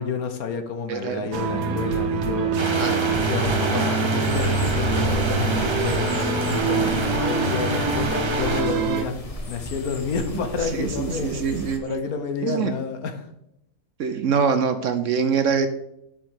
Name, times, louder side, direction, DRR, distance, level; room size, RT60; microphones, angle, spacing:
voice 1, 0.0-2.8 3.0-9.2 9.5-11.4 11.8-13.3, left 5 dB, 65° left, 7 dB, 1.4 m, -30 dB
voice 2, 0.9-1.3 2.8-3.0 10.3-12.0 12.4-12.7 14.0-15.7, right 6 dB, 65° right, 9 dB, 0.9 m, -24 dB
sound 1, 1.3-9.0, right 4 dB, 85° right, 1.5 m, -25 dB
sound 2, 2.6-8.6, right 2 dB, 25° right, 0.6 m, -28 dB
sound 3, 4.2-11.8, left 2 dB, 30° left, 0.8 m, -35 dB
7.3 x 6.3 x 4.8 m, 0.81 s
omnidirectional pair, 1.7 m